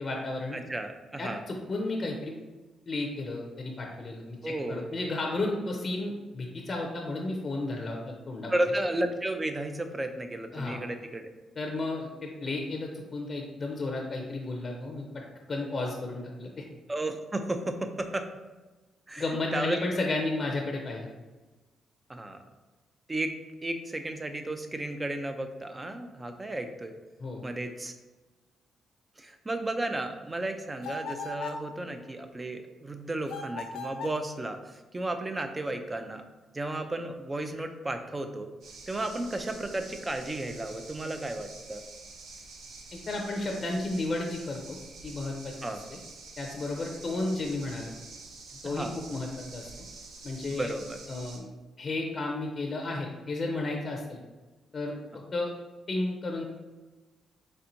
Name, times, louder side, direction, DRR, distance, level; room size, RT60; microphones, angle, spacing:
voice 1, 0.0-0.6 1.2-2.3 2.9-8.5 10.5-10.8 11.6-15.2 15.5-16.6 19.2-21.1 27.2-27.5 42.9-44.8 45.0-46.0 46.4-47.9 48.6-49.7 50.2-50.7 51.1-51.5 51.8-54.2 54.7-54.9 55.3-55.5 55.9-56.4, left 2 dB, 40° left, 1 dB, 0.6 m, -33 dB
voice 2, 0.5-1.4 4.4-4.8 8.5-11.3 16.9-18.2 19.1-19.2 19.5-19.8 22.1-22.4 23.1-23.3 23.6-26.9 27.4-27.9 29.2-36.2 36.5-38.5 38.9-41.8 45.6-45.8 48.6-49.0 50.5-51.0, right 1 dB, 25° right, 6 dB, 0.5 m, -33 dB
sound 1, 30.8-31.7 33.3-34.2, left 3 dB, 90° left, 0.6 m, -37 dB
sound 2, 38.6-51.4, right 3 dB, 80° right, 0.7 m, -47 dB
4.3 x 3.4 x 2.6 m, 1.2 s
cardioid pair, 80°, 0 cm